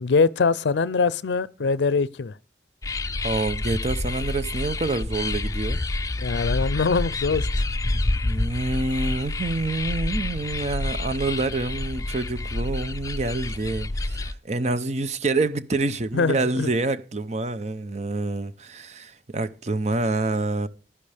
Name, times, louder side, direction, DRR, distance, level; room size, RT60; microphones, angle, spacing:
voice 1, 0.0-2.3 6.2-7.5 16.1-16.7, left 4 dB, 80° left, 0.5 m, -23 dB
sound 1, 2.8-14.3, left 2 dB, 20° left, 0.5 m, -28 dB
voice 2, 3.2-5.8 7.9-20.7, right 2 dB, 40° right, 0.7 m, -27 dB
15.0 x 11.0 x 3.4 m
head